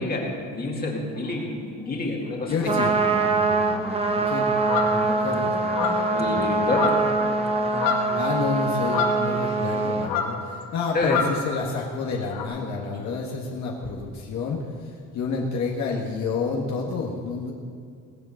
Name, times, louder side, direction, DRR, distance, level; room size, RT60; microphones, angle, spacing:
voice 1, 0.0-2.8 3.5-4.1 6.1-7.0 7.7-7.9 10.9-11.2, left 2 dB, 25° left, -1 dB, 2.3 m, -28 dB
voice 2, 2.5-2.9 4.1-4.5 4.8-5.5 8.1-17.5, left 4 dB, 55° left, -2 dB, 1.6 m, -29 dB
Trumpet, 2.5-10.1, right 3 dB, 15° right, 0.9 m, -24 dB
sound 1, 2.6-8.3, left 1 dB, 5° left, 0.8 m, -36 dB
sound 2, 4.6-5.0 5.7-6.1 6.7-7.2 7.5-8.2 8.8-9.7 10.0-10.4 11.0-11.4 12.3-12.4, left 7 dB, 85° left, 1.8 m, -27 dB
19.5 x 7.6 x 7.1 m, 2.2 s
cardioid pair, 155°, 34 cm